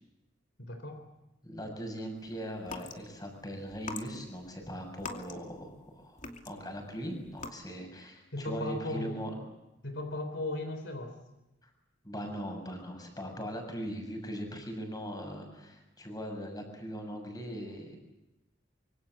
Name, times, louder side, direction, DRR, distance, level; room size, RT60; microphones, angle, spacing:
voice 1, 0.6-1.0 8.3-9.2 9.8-11.2, left 2 dB, 70° left, 7 dB, 3.7 m, -36 dB
voice 2, 1.4-9.3 12.0-18.0, equal, 20° left, 4 dB, 7.0 m, -40 dB
sound 1, 2.6-3.0 3.7-5.8 6.2-6.8 7.3-7.5, left 4 dB, 40° left, 2.7 m, -43 dB
25.5 x 24.5 x 7.9 m, 0.96 s
head